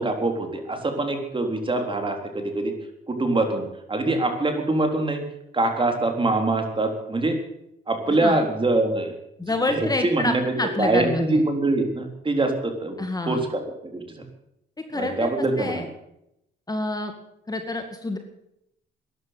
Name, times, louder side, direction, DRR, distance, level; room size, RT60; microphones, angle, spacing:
voice 1, 0.0-2.7 3.1-5.2 5.5-7.4 7.9-9.2 9.4-10.4 10.8-13.0 13.3-14.2 14.9-15.9, right 2 dB, 25° right, 5 dB, 3.7 m, -24 dB
voice 2, 9.4-11.4 13.0-13.4 14.8-15.3 15.6-15.8 16.7-17.1 17.5-18.2, left 2 dB, 20° left, 5 dB, 2.1 m, -27 dB
13.5 x 11.0 x 9.3 m, 0.80 s
cardioid pair, 90°, 20 cm